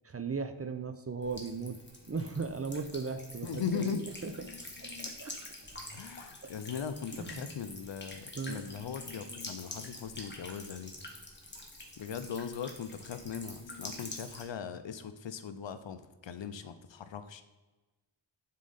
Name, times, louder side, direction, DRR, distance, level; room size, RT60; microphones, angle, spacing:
voice 1, 0.0-1.8 2.1-3.9 4.2-4.3 4.8-5.3 6.4-6.5 7.2-7.4 8.3-8.7 13.9-14.1, right 4 dB, 30° right, 8 dB, 0.5 m, -37 dB
Buzz / Water tap faucet / Trickle dribble, 1.2-14.4, left 2 dB, 20° left, 1.3 m, -46 dB
voice 2, 3.4-4.0 5.9-10.9 12.0-17.4, left 7 dB, 65° left, 11 dB, 0.6 m, -39 dB
7.3 x 3.8 x 3.9 m, 1.2 s
cardioid pair, 50°, 48 cm